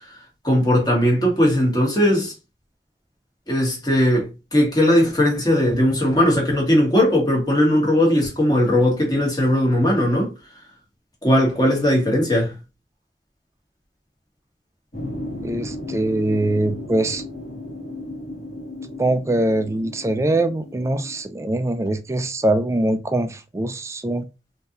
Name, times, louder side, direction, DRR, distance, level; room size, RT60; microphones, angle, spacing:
voice 1, 0.4-2.3 3.5-10.3 11.2-12.5, left 1 dB, 20° left, 1.3 m, -18 dB
sound 1, 14.9-21.2, left 1 dB, 40° left, 1.3 m, -35 dB
voice 2, 15.4-17.2 19.0-24.2, right 1 dB, 15° right, 0.3 m, -22 dB
3.7 x 2.8 x 2.6 m
head